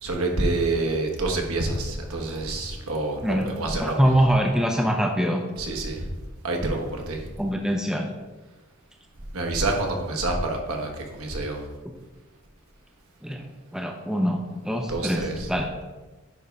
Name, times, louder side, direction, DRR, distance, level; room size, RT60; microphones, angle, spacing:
voice 1, 0.0-4.1 5.6-6.1 6.4-7.3 9.3-11.6 14.9-15.5, right 2 dB, 70° right, 2 dB, 1.3 m, -27 dB
voice 2, 3.2-5.5 7.4-8.1 13.2-15.7, equal, 5° right, 2 dB, 0.6 m, -24 dB
9.7 x 3.5 x 5.2 m, 1.2 s
head